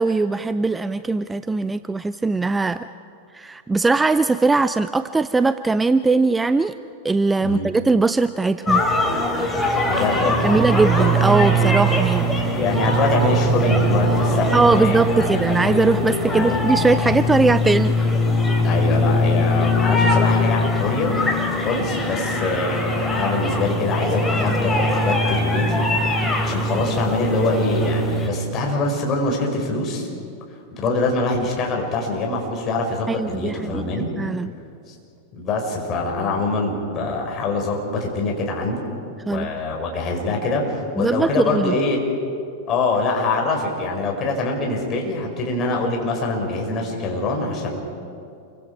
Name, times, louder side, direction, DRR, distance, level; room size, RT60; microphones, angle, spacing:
voice 1, 0.0-2.9 3.3-6.7 7.0-8.8 10.3-12.3 14.5-17.9 33.1-34.5 39.3-39.6 41.0-41.8, right 3 dB, 10° right, 14 dB, 0.5 m, -20 dB
sound 1, 8.7-28.3, left 1 dB, 10° left, 3.4 m, -21 dB
voice 2, 9.9-10.6 12.5-15.4 16.3-16.6 18.6-21.1 21.6-25.8 26.4-30.1 30.8-34.1 34.9-35.0 35.3-38.9 39.3-42.0 42.7-47.8, left 3 dB, 30° left, 0 dB, 5.4 m, -24 dB
28.5 x 24.0 x 4.8 m, 2.4 s
figure-of-eight pair, 90°, 0 cm